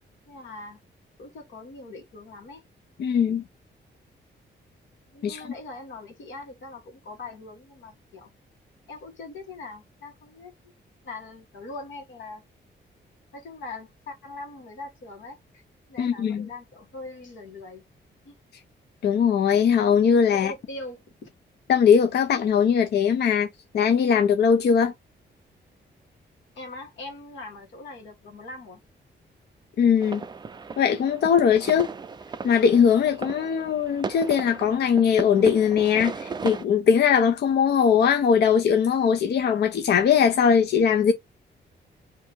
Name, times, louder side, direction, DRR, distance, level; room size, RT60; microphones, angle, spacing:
voice 1, 0.3-0.8 1.2-2.6 5.1-8.3 8.9-10.5 11.0-12.4 13.3-15.6 15.9-17.8 18.2-18.3 20.4-21.3 26.5-28.8, left 2 dB, 85° left, 1.4 m, -41 dB
voice 2, 3.0-3.4 5.2-5.5 16.0-16.5 19.0-20.5 21.7-23.5 23.7-24.9 29.8-30.2 30.8-31.9 32.4-41.1, left 7 dB, 60° left, 0.5 m, -20 dB
sound 1, 30.0-36.6, right 5 dB, 25° right, 0.3 m, -36 dB
2.7 x 2.7 x 3.4 m
wide cardioid pair, 135°, 19 cm